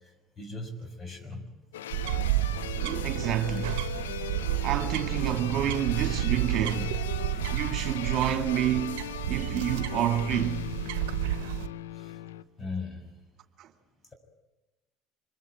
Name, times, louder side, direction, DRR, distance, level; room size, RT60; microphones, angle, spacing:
voice 1, 0.4-1.4 4.8-4.9 12.0-12.2 12.6-13.1, left 3 dB, 25° left, 6.5 m, -38 dB
sound 1, 1.7-12.4, left 11 dB, 85° left, 0.8 m, -39 dB
sound 2, 1.9-11.7, right 15 dB, 75° right, 1.1 m, -31 dB
voice 2, 2.8-3.9 4.6-7.0 7.5-9.0 9.3-10.6 13.6-13.7, right 10 dB, 55° right, 2.0 m, -29 dB
25.5 x 22.5 x 9.3 m
hypercardioid pair, 75°, 0 cm